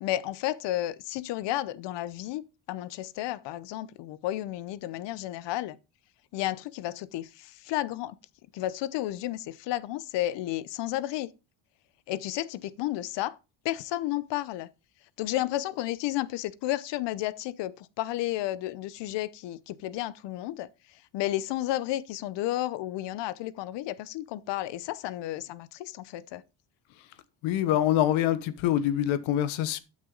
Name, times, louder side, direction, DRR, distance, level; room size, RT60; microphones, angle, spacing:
voice 1, 0.0-5.8 6.3-8.2 8.5-11.3 12.1-13.4 13.6-14.7 15.2-20.7 21.1-26.4, left 15 dB, 65° left, 0.7 m, -32 dB
voice 2, 27.4-29.8, left 12 dB, 85° left, 1.2 m, -25 dB
12.0 x 6.3 x 3.9 m
cardioid pair, 155°, 46 cm